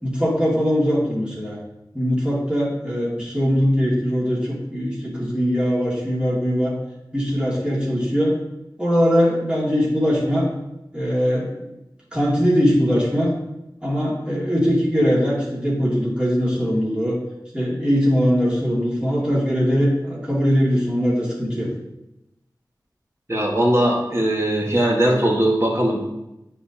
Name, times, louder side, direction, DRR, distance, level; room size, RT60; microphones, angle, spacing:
voice 1, 0.0-1.6 1.9-6.7 7.1-8.4 8.8-10.5 10.9-11.7 12.1-13.3 13.8-17.2 17.5-21.7, equal, 15° right, -7 dB, 2.4 m, -21 dB
voice 2, 23.3-26.1, right 1 dB, 35° right, -2 dB, 1.8 m, -19 dB
9.2 x 4.0 x 2.9 m, 0.92 s
wide cardioid pair, 45°, 8 cm